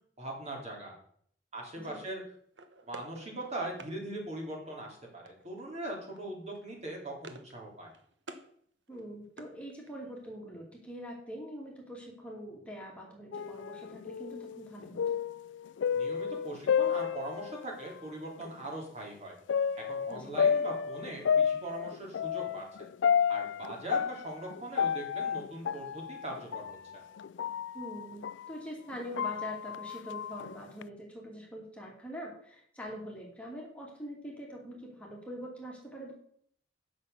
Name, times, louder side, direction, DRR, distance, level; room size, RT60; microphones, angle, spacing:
voice 1, 0.2-0.9 1.5-2.2 2.9-7.9 15.9-19.4 19.9-22.9 23.3-27.0, right 1 dB, 40° right, -1 dB, 3.3 m, -41 dB
sound 1, 2.5-4.0 5.3-5.7 5.9-6.2 6.5-7.6 7.8-8.5 8.9-10.1, right 3 dB, 85° right, 1.1 m, -51 dB
voice 2, 8.9-15.2 20.1-20.4 27.7-36.1, equal, 5° left, -2 dB, 2.4 m, -44 dB
sound 2, 13.3-17.9 18.4-18.5 19.5-28.5 28.9-30.8, left 7 dB, 85° left, 0.4 m, -31 dB
9.6 x 6.6 x 6.6 m, 0.62 s
head